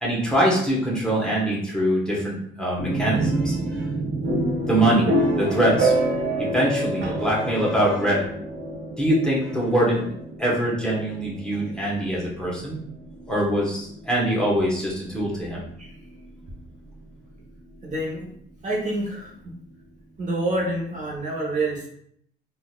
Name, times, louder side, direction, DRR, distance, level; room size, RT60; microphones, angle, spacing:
voice 1, 0.0-3.9 4.7-6.1 6.4-8.3 9.0-10.1 10.4-12.8 13.3-15.6, right 1 dB, 5° left, -5 dB, 1.2 m, -23 dB
sound 1, 2.8-16.6, right 1 dB, 75° right, 1.1 m, -28 dB
voice 2, 17.8-18.3 18.6-19.3 20.2-21.9, right 1 dB, 40° right, -3 dB, 1.1 m, -27 dB
3.9 x 2.6 x 2.4 m, 0.67 s
cardioid pair, 90°, 20 cm